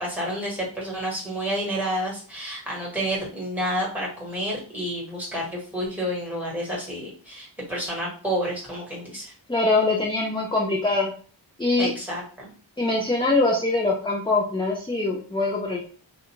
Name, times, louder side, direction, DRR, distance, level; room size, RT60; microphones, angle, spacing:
voice 1, 0.0-9.3 11.8-12.5, equal, 5° right, -4 dB, 1.3 m, -30 dB
voice 2, 9.5-11.1 11.6-11.9 12.8-15.9, left 2 dB, 10° left, -2 dB, 0.4 m, -23 dB
2.5 x 2.2 x 3.0 m, 0.40 s
wide cardioid pair, 60°, 46 cm